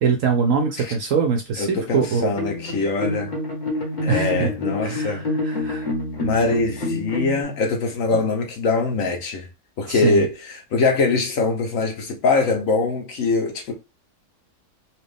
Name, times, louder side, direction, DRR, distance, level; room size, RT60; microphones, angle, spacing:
voice 1, 0.0-2.3 4.1-4.5 4.8-5.9 9.9-10.3, right 5 dB, 65° right, 0.8 m, -23 dB
voice 2, 1.6-3.3 4.0-5.2 6.2-9.5 9.8-13.7, left 3 dB, 60° left, 1.1 m, -23 dB
sound 1, 2.3-7.4, left 2 dB, 30° left, 1.1 m, -27 dB
4.3 x 2.4 x 3.4 m
omnidirectional pair, 1.8 m